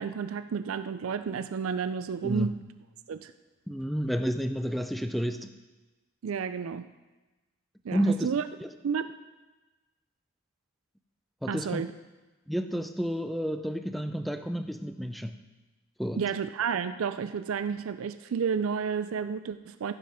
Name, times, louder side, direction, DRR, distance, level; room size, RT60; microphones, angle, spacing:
voice 1, 0.0-2.6 3.1-3.3 6.2-6.9 7.8-8.4 8.8-9.1 11.5-11.9 16.2-19.9, right 6 dB, 90° right, 12 dB, 0.4 m, -31 dB
voice 2, 2.2-2.6 3.7-5.5 7.9-8.3 8.6-8.7 11.4-11.8 12.5-15.4 16.0-16.2, equal, ahead, 9 dB, 0.4 m, -30 dB
15.5 x 5.8 x 4.9 m, 1.2 s
head